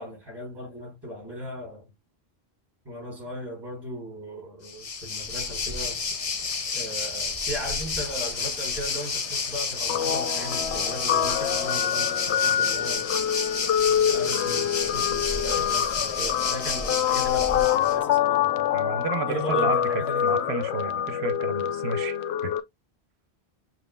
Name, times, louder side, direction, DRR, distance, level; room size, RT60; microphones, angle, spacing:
voice 1, 0.0-1.9 2.8-6.0 6.7-13.0 13.8-18.7 19.3-20.4, equal, 20° right, 3.6 m, -37 dB
Waves surf, 4.6-18.0, left 4 dB, 40° left, 0.7 m, -30 dB
Guitar, 9.9-22.6, left 10 dB, 90° left, 0.9 m, -26 dB
voice 2, 18.7-22.5, right 6 dB, 80° right, 0.9 m, -32 dB
7.6 x 3.0 x 2.2 m
omnidirectional pair, 1.1 m